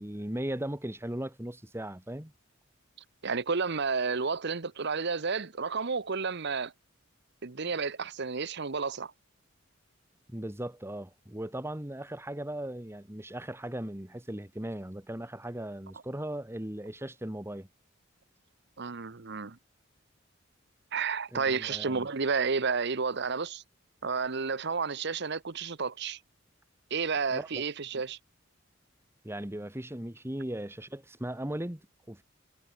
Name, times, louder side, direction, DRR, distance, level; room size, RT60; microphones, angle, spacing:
voice 1, 0.0-2.3 10.3-17.7 21.3-22.1 27.3-27.6 29.2-32.2, right 1 dB, 10° right, 1.5 m, -38 dB
voice 2, 3.2-6.7 7.4-9.1 18.8-19.6 20.9-23.6 24.0-26.2 26.9-28.2, right 5 dB, 60° right, 1.0 m, -31 dB
head